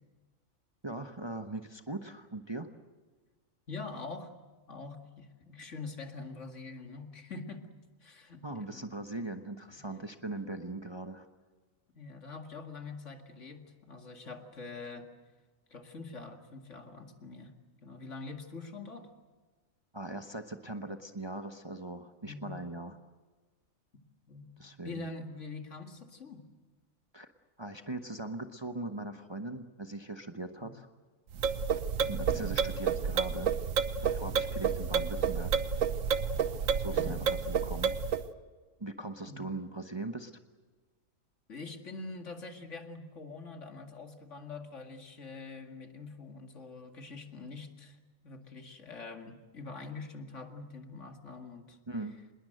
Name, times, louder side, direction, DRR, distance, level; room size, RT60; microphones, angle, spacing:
voice 1, 0.8-2.7 8.4-11.3 19.9-23.0 24.6-25.1 27.1-27.3 27.6-30.9 32.0-33.5 34.0-35.6 36.8-37.9 38.8-40.3 51.9-52.2, right 2 dB, 20° right, 7 dB, 1.0 m, -40 dB
voice 2, 3.7-4.3 4.7-7.7 8.0-8.9 9.8-9.9 11.9-15.1 15.7-17.5 17.8-19.1 22.2-22.6 24.3-24.5 24.8-26.4 30.6-30.8 32.0-32.1 36.9-37.2 39.2-39.5 41.5-48.0 48.2-51.8, left 3 dB, 60° left, 5 dB, 2.5 m, -44 dB
sound 1, 31.3-38.2, right 6 dB, 75° right, 1.3 m, -30 dB
26.0 x 21.0 x 7.8 m, 1.3 s
omnidirectional pair, 1.4 m